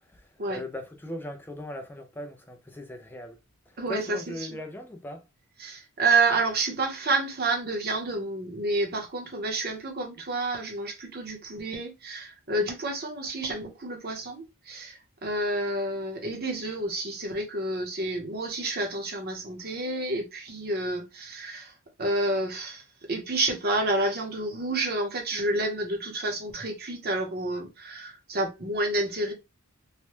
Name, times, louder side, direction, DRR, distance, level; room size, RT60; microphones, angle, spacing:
voice 1, 0.1-3.4 3.7-5.2, left 1 dB, 10° left, 0.4 m, -39 dB
voice 2, 3.8-4.5 5.6-29.3, right 2 dB, 45° right, 0.8 m, -29 dB
3.2 x 2.1 x 3.0 m
head